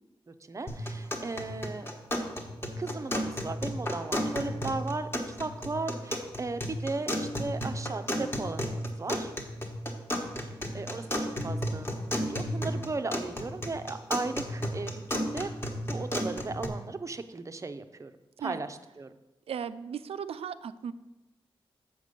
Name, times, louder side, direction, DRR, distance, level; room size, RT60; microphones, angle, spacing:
voice 1, 0.3-1.9 2.8-9.3 10.7-11.9 12.2-15.5 15.8-18.1 18.4-19.2, right 3 dB, 30° right, 10 dB, 0.5 m, -36 dB
sound 1, 0.7-16.7, equal, 25° left, 1.2 m, -33 dB
voice 2, 19.5-20.9, right 8 dB, 90° right, 13 dB, 0.4 m, -36 dB
7.1 x 5.0 x 6.7 m, 1.0 s
wide cardioid pair, 90°, 10 cm